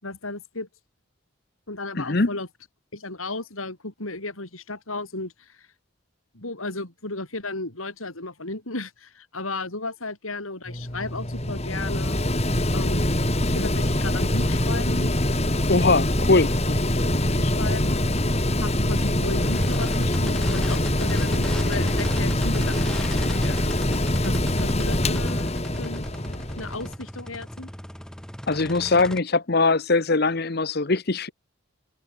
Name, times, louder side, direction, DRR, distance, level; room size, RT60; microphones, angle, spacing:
voice 1, 0.0-0.7 1.7-2.5 2.9-5.7 6.3-12.2 12.7-15.1 17.4-18.1 18.6-23.7 24.2-26.1 26.6-27.7, left 2 dB, 90° left, 5.5 m, -34 dB
voice 2, 2.0-2.3 15.7-16.5 28.5-31.3, left 3 dB, 50° left, 1.0 m, -21 dB
Mechanical fan, 10.7-26.9, left 1 dB, 30° left, 3.7 m, -24 dB
sound 1, 12.9-29.2, equal, 5° left, 2.8 m, -39 dB
head